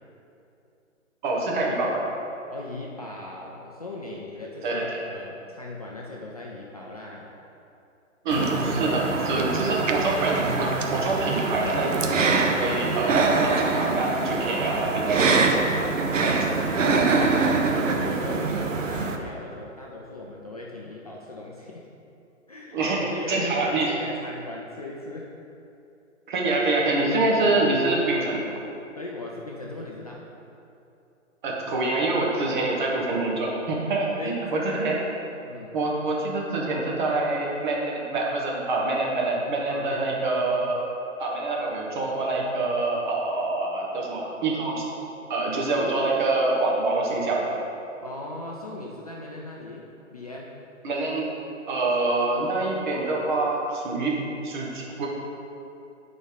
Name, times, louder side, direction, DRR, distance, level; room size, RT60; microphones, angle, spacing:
voice 1, 1.2-2.0 4.6-5.0 8.2-15.6 16.2-16.5 22.7-23.9 26.3-28.4 31.4-35.0 35.7-40.8 41.2-44.8 45.3-47.5 50.8-51.3 51.7-54.1 54.4-55.1, right 2 dB, 35° right, -2 dB, 1.4 m, -26 dB
voice 2, 2.5-7.3 8.8-9.8 14.9-15.1 16.3-21.9 22.5-25.3 26.9-27.2 28.0-28.1 29.0-30.4 32.4-32.5 34.1-34.4 35.4-35.8 39.7-40.2 48.0-50.6, left 2 dB, 30° left, -3 dB, 0.4 m, -38 dB
sound 1, 8.3-19.2, right 4 dB, 70° right, 0.9 m, -24 dB
10.5 x 4.3 x 3.9 m, 2.8 s
figure-of-eight pair, 140°, 40 cm